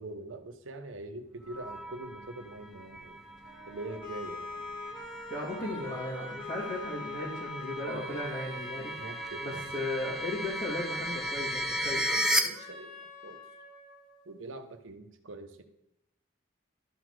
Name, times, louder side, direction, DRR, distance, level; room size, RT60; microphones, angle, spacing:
voice 1, 0.0-3.2 3.7-4.6 9.0-9.7 12.1-13.0 13.2-13.4 14.3-15.6, right 2 dB, 70° right, 7 dB, 0.9 m, -43 dB
sound 1, 1.5-12.4, equal, ahead, 0.3 m, -36 dB
sound 2, 3.4-14.4, left 3 dB, 20° left, 1.9 m, -44 dB
voice 2, 5.3-8.9 9.4-12.0, left 1 dB, 40° left, -8 dB, 2.2 m, -36 dB
12.0 x 4.0 x 4.7 m, 0.81 s
head